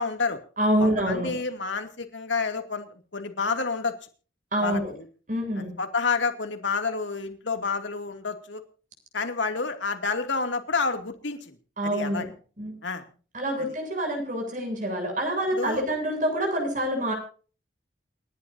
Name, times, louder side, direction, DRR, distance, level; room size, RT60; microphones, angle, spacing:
voice 1, 0.0-0.4 0.8-3.9 4.6-5.1 5.6-8.6 9.1-11.5 11.8-12.3 12.8-13.0 13.6-13.7 15.5-15.8, left 4 dB, 75° left, 6 dB, 2.6 m, -29 dB
voice 2, 0.6-1.3 4.5-4.9 5.3-5.7 11.8-12.3 12.6-12.7 13.3-17.1, right 1 dB, 40° right, 3 dB, 7.9 m, -26 dB
28.5 x 11.5 x 2.7 m, 0.38 s
head